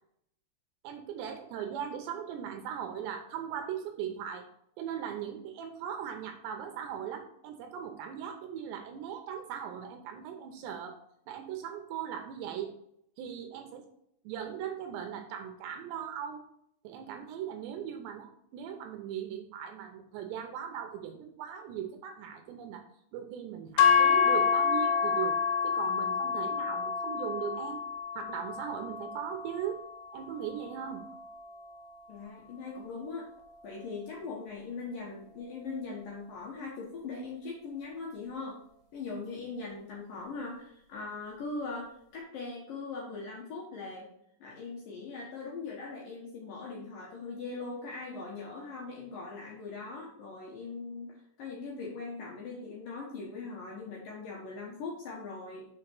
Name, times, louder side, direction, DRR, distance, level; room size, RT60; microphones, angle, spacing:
voice 1, 0.8-4.4 4.8-11.0 11.3-12.7 13.2-13.8 14.2-16.4 16.8-22.8 23.1-25.4 25.6-27.8 28.2-29.8 30.1-31.0, right 9 dB, 80° right, 5 dB, 2.8 m, -39 dB
sound 1, 23.8-32.0, left 6 dB, 85° left, 3.0 m, -29 dB
voice 2, 32.1-33.3 33.6-38.6 38.9-44.1 44.4-55.7, left 4 dB, 65° left, -3 dB, 2.3 m, -40 dB
6.4 x 5.0 x 4.5 m, 0.73 s
omnidirectional pair, 5.4 m